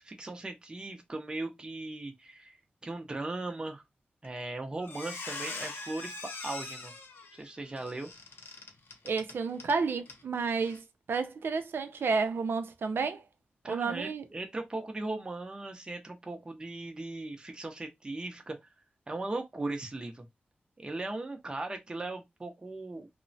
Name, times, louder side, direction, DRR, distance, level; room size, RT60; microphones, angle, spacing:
voice 1, 0.0-2.6 2.8-3.8 4.2-6.1 6.4-6.9 7.3-8.1 13.6-18.6 19.1-20.3 20.8-23.1, right 2 dB, 25° right, 0.5 m, -38 dB
Squeak, 4.2-4.5 4.8-9.8 10.1-10.2 10.6-10.8, left 3 dB, 75° left, 0.7 m, -42 dB
voice 2, 9.0-10.8 11.1-13.2 13.7-14.2, right 4 dB, 85° right, 0.4 m, -31 dB
2.9 x 2.0 x 2.6 m
wide cardioid pair, 140°, 4 cm